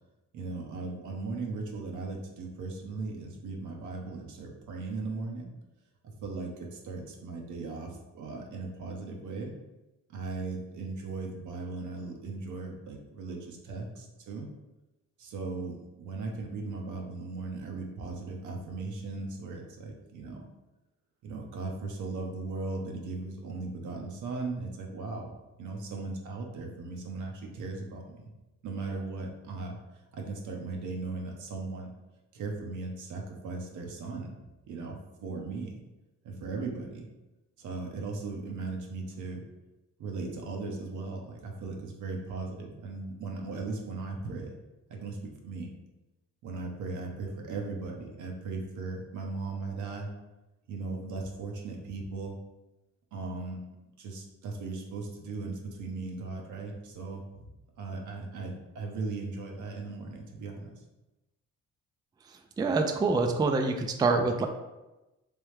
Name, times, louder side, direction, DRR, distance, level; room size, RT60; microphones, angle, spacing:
voice 1, 0.3-5.5 6.0-9.5 10.1-14.5 15.2-20.4 21.2-28.3 28.6-29.8 30.1-31.9 32.3-34.3 34.7-35.7 36.2-37.1 37.6-39.4 40.0-44.5 44.9-45.2 45.4-45.7 46.4-50.1 50.7-52.4 53.1-53.6 54.0-57.5 57.8-60.7, right 3 dB, 80° right, 1 dB, 0.8 m, -37 dB
voice 2, 62.6-64.5, right 3 dB, 15° right, 5 dB, 0.3 m, -26 dB
3.4 x 3.2 x 3.2 m, 1.0 s
cardioid pair, 90°, 30 cm